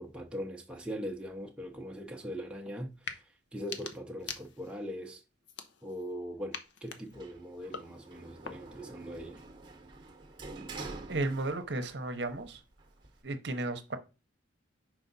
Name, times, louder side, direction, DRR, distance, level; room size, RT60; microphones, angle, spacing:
voice 1, 0.0-5.2 5.8-9.4, equal, 5° right, 0.6 m, -41 dB
sound 1, 2.9-3.2 3.6-4.9 5.4-6.1 6.5-8.9, left 6 dB, 65° left, 0.7 m, -45 dB
Sliding door, 7.1-11.9 12.3-13.2, right 3 dB, 25° right, 1.0 m, -47 dB
voice 2, 11.1-12.6 13.2-14.0, right 2 dB, 55° right, 0.8 m, -34 dB
5.6 x 4.6 x 4.0 m
head